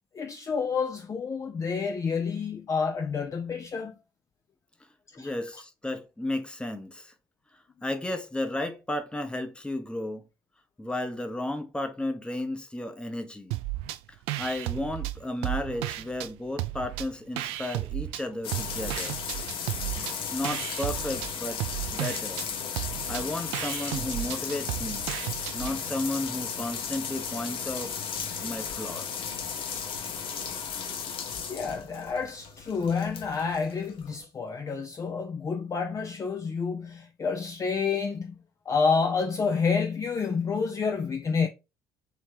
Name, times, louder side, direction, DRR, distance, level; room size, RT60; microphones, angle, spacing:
voice 1, 0.1-3.9 5.1-5.3 31.5-38.4 38.7-41.5, left 5 dB, 30° left, 0.5 m, -29 dB
voice 2, 5.2-7.1 7.5-10.2 10.8-13.6 14.4-19.2 20.0-21.6 21.9-22.5 23.1-25.1 25.5-27.9 28.4-29.2, left 1 dB, 10° left, 0.9 m, -33 dB
sound 1, 13.5-14.0 14.3-16.3 16.6-18.2 18.5-25.8, right 16 dB, 60° right, 0.4 m, -34 dB
sound 2, 18.4-34.3, left 6 dB, 50° left, 0.8 m, -35 dB
3.2 x 3.1 x 4.6 m
figure-of-eight pair, 55°, 11 cm